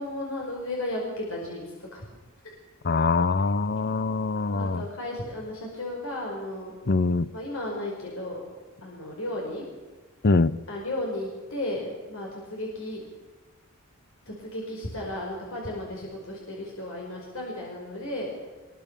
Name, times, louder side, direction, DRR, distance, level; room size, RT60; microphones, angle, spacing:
voice 1, 0.0-2.1 2.4-2.5 4.5-6.7 7.3-8.4 8.8-9.7 10.7-13.0 14.3-18.3, left 1 dB, 65° left, -1 dB, 5.4 m, -34 dB
voice 2, 2.8-4.9 6.9-7.3 10.2-10.6, left 3 dB, 50° left, 17 dB, 0.7 m, -23 dB
24.5 x 22.5 x 6.9 m, 1.3 s
head